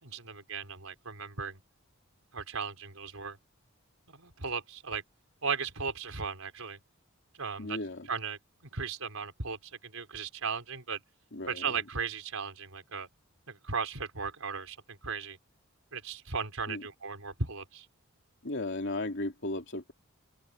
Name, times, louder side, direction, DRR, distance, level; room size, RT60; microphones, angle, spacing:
voice 1, 0.0-1.6 2.3-3.4 4.1-5.0 5.4-6.8 7.4-7.8 8.1-11.0 11.5-13.1 13.5-15.4 15.9-17.9, right 5 dB, 85° right, 4.8 m, -36 dB
voice 2, 7.6-8.1 11.3-11.7 16.7-16.8 18.4-19.9, left 2 dB, 60° left, 3.0 m, -35 dB
head